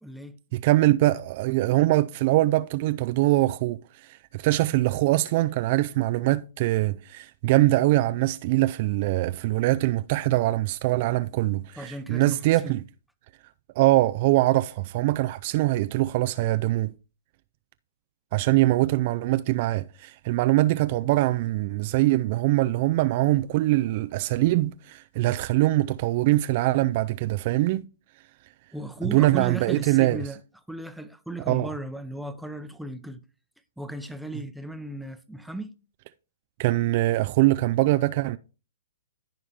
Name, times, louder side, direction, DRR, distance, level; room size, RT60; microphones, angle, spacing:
voice 1, 0.0-0.4 11.8-12.8 28.7-30.4 30.7-33.2 33.8-35.7, right 1 dB, ahead, 0.8 m, -36 dB
voice 2, 0.5-12.8 13.8-16.9 18.3-27.8 29.0-30.2 31.5-31.7 36.6-38.4, right 17 dB, 45° right, 0.3 m, -23 dB
14.5 x 5.0 x 2.8 m
hypercardioid pair, 125°, 0 cm